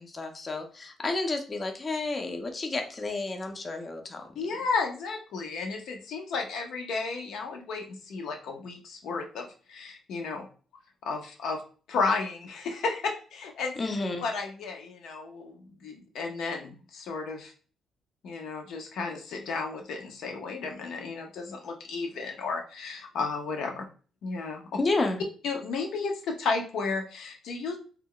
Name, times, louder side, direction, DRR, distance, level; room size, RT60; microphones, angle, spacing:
voice 1, 0.2-4.3 13.8-14.2 24.8-25.2, left 3 dB, 30° left, 4 dB, 0.5 m, -30 dB
voice 2, 4.4-10.5 11.0-11.6 11.9-13.8 14.2-17.5 18.2-23.9 24.2-24.6 25.4-27.8, left 4 dB, 75° left, 3 dB, 0.5 m, -33 dB
2.2 x 2.0 x 3.6 m, 0.39 s
cardioid pair, 90°, 0 cm